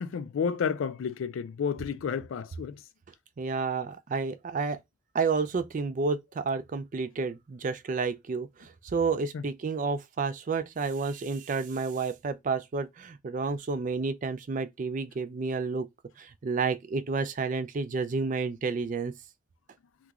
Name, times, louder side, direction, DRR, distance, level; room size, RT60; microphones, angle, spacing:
voice 1, 0.0-2.8 9.3-9.4, left 6 dB, 75° left, 0.3 m, -31 dB
voice 2, 3.4-4.8 5.1-15.9 16.2-19.1, right 4 dB, 40° right, 0.3 m, -30 dB
3.0 x 2.4 x 3.5 m
head